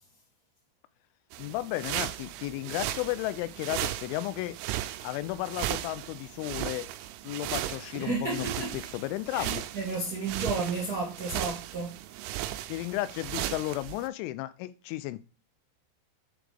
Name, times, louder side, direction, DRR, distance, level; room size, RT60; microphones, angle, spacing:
sound 1, 1.3-14.1, right 14 dB, 85° right, 3.1 m, -36 dB
voice 1, 1.4-4.6 5.0-6.9 7.2-8.5 8.7-9.7 12.7-15.2, left 16 dB, 90° left, 3.0 m, -33 dB
voice 2, 8.0-8.7 9.3-9.5 9.7-12.0, right 3 dB, 70° right, 0.8 m, -32 dB
7.6 x 3.4 x 5.0 m
omnidirectional pair, 5.4 m